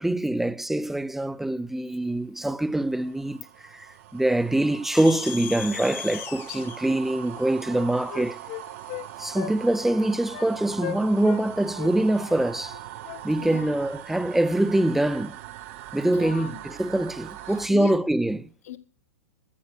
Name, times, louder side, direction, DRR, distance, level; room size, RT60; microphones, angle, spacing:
voice 1, 0.0-8.4 9.2-12.8 13.2-15.4 15.9-18.5, right 1 dB, 5° right, 0.5 m, -24 dB
sound 1, 2.1-17.7, right 13 dB, 55° right, 0.9 m, -42 dB
sound 2, 4.9-9.4, left 10 dB, 30° left, 1.0 m, -39 dB
Wind instrument woodwind instrument, 6.8-7.0 7.3-9.1 9.3-9.6 9.8-10.0 10.3-10.5 10.8-11.4 11.8-13.6, left 16 dB, 50° left, 0.7 m, -38 dB
voice 2, 13.3-13.8 16.0-16.6 17.5-18.0 18.6-18.8, left 13 dB, 70° left, 1.1 m, -37 dB
14.0 x 7.2 x 6.6 m
hypercardioid pair, 110°, 8 cm